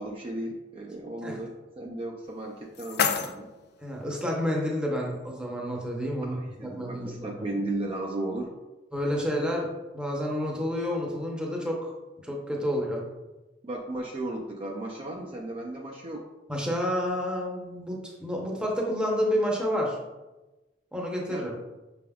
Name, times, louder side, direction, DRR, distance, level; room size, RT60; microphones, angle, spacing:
voice 1, 0.0-3.5 6.3-8.5 13.6-16.2 21.3-21.5, right 2 dB, 30° right, -1 dB, 0.4 m, -35 dB
Dropped Keys, 2.2-4.2, left 7 dB, 60° left, 0.4 m, -31 dB
voice 2, 3.8-7.3 8.9-9.7 9.9-11.8 12.2-13.0 16.5-20.0 20.9-21.5, equal, 5° right, -2 dB, 0.7 m, -29 dB
5.9 x 3.5 x 2.3 m, 1.1 s
head